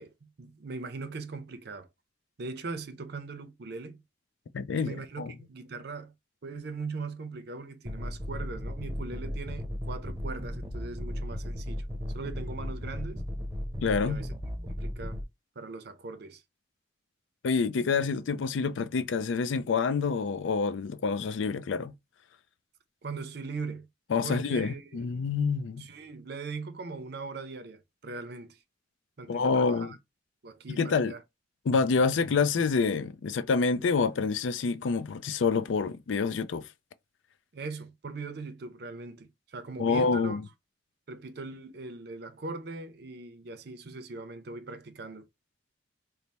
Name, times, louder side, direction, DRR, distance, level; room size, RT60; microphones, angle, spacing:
voice 1, 0.0-1.9 2.4-4.0 4.7-6.1 6.4-11.9 12.1-13.3 14.0-14.3 14.8-15.2 15.6-16.4 23.0-23.9 24.2-25.1 25.8-28.6 29.2-30.0 30.4-31.2 37.5-40.4 41.1-45.3, right 3 dB, 60° right, 0.5 m, -40 dB
voice 2, 4.5-5.3 13.8-14.2 17.4-21.9 24.1-25.9 29.3-29.9 30.8-31.1 31.7-36.6 39.8-40.4, left 5 dB, 80° left, 0.4 m, -27 dB
sound 1, 7.8-15.2, equal, 15° right, 0.7 m, -36 dB
3.2 x 2.1 x 4.1 m
head